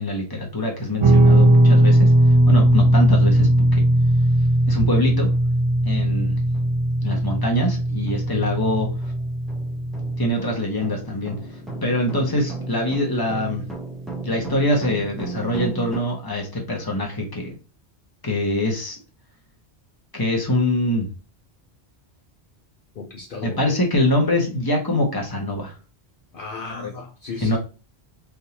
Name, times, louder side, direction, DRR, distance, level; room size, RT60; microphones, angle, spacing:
voice 1, 0.0-2.1 2.5-3.8 4.7-5.3 5.8-6.4 7.0-8.9 10.2-11.3 11.8-13.6 14.2-17.6 18.2-19.0 20.1-21.1 23.4-25.7 26.8-26.9 27.4-27.6, left 1 dB, 20° left, 1.1 m, -24 dB
Guitar, 1.0-10.3, right 1 dB, 35° right, 0.6 m, -18 dB
sound 1, 5.3-5.4 6.0-6.1 6.5-16.0, right 3 dB, ahead, 0.8 m, -35 dB
voice 2, 23.0-23.6 26.3-27.6, left 4 dB, 60° left, 0.8 m, -35 dB
3.5 x 2.7 x 2.8 m
omnidirectional pair, 1.1 m